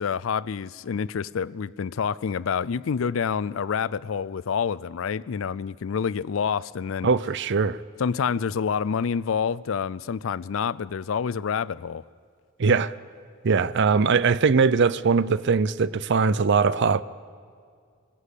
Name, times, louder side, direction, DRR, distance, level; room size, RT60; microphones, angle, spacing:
voice 1, 0.0-7.1 8.0-12.0, left 6 dB, 70° left, 0.4 m, -27 dB
voice 2, 7.0-7.8 12.6-12.9 13.4-17.0, right 5 dB, 60° right, 0.5 m, -21 dB
21.0 x 14.5 x 8.3 m
head